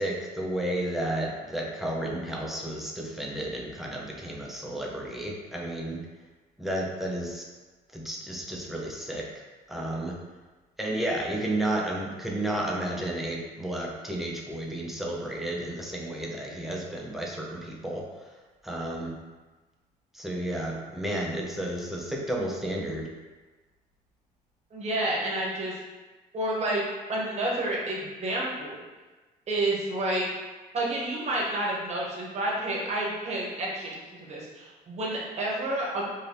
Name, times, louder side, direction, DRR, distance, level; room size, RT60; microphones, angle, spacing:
voice 1, 0.0-6.0 6.6-7.4 7.9-9.3 9.7-10.2 10.8-18.3 18.6-19.1 20.1-23.1, right 1 dB, ahead, -2 dB, 0.5 m, -32 dB
voice 2, 24.7-25.7 26.3-26.8 27.1-28.8 29.5-30.2 30.7-36.0, right 1 dB, 40° right, -3 dB, 0.9 m, -29 dB
2.7 x 2.6 x 3.3 m, 1.3 s
cardioid pair, 110°, 17 cm